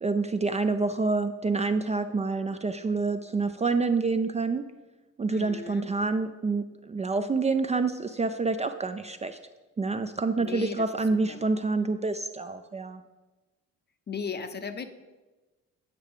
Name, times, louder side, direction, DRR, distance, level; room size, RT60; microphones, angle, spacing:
voice 1, 0.0-4.6 5.2-9.4 9.8-13.0, right 3 dB, 25° right, 8 dB, 0.4 m, -27 dB
voice 2, 5.3-5.9 10.4-10.9 11.3-11.4 14.1-14.9, left 5 dB, 35° left, 10 dB, 0.6 m, -36 dB
8.3 x 5.5 x 4.9 m, 1.2 s
cardioid pair, 90°, 30 cm